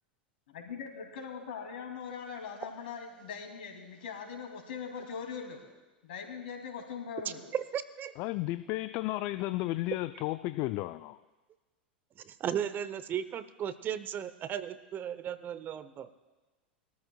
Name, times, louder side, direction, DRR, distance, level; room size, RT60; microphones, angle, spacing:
voice 1, 0.5-5.6 6.0-7.4, left 6 dB, 70° left, 3 dB, 2.7 m, -41 dB
voice 2, 7.5-8.1 12.2-16.1, right 9 dB, 35° right, 13 dB, 0.8 m, -35 dB
voice 3, 8.2-11.2, left 18 dB, 50° left, 13 dB, 0.4 m, -33 dB
22.0 x 13.5 x 2.3 m, 1.2 s
hypercardioid pair, 90°, 5 cm